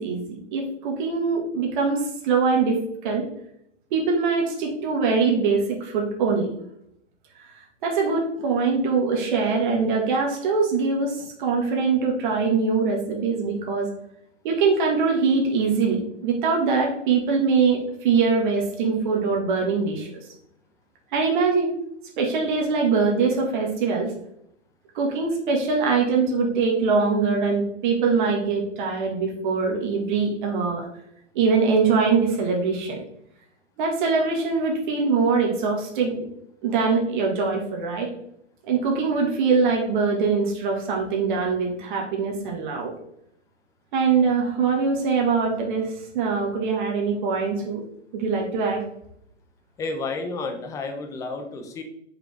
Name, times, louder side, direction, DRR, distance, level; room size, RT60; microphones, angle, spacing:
voice 1, 0.0-3.3 3.9-6.5 7.5-13.9 14.4-20.1 21.1-21.7 22.2-24.1 25.0-30.9 31.4-33.0 33.8-36.3 36.6-38.1 38.7-42.9 43.9-47.8 48.1-48.8, right 4 dB, 40° right, 0 dB, 1.6 m, -23 dB
voice 2, 49.8-51.8, left 3 dB, 10° left, 5 dB, 0.5 m, -31 dB
6.0 x 5.1 x 3.4 m, 0.73 s
hypercardioid pair, 130°, 36 cm